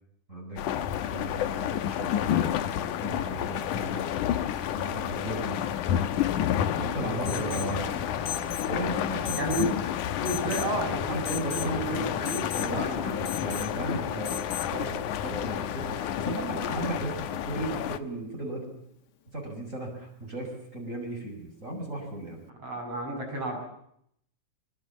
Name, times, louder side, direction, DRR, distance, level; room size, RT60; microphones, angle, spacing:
voice 1, 0.3-0.6 1.1-4.2 4.7-5.6 6.7-7.9 8.6-9.9 11.1-14.4 14.7-14.9 15.2-18.8 19.3-22.4, right 2 dB, 25° right, 0 dB, 6.6 m, -36 dB
sound 1, 0.6-18.0, left 10 dB, 85° left, 2.6 m, -30 dB
voice 2, 7.0-8.7 9.4-9.8 10.1-13.3 22.6-23.6, right 1 dB, 50° right, 3 dB, 8.6 m, -33 dB
Alarm, 7.3-7.7 8.3-8.7 9.3-9.7 10.3-10.7 11.3-11.7 12.3-12.7 13.3-13.7 14.3-14.7, left 10 dB, 60° left, 1.1 m, -37 dB
25.0 x 23.5 x 7.2 m, 0.72 s
omnidirectional pair, 3.5 m